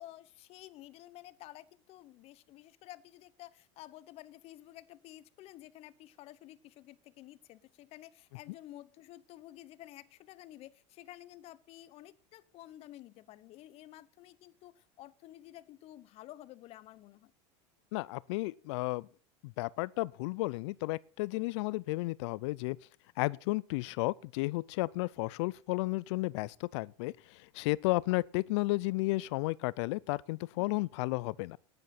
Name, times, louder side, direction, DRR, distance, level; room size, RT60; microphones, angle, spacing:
voice 1, 0.0-17.3 30.6-30.9, left 14 dB, 40° left, 0.7 m, -52 dB
voice 2, 17.9-19.1 19.6-22.8 23.2-31.6, left 22 dB, 70° left, 0.4 m, -33 dB
10.5 x 9.9 x 5.8 m
supercardioid pair, 145°, 15 cm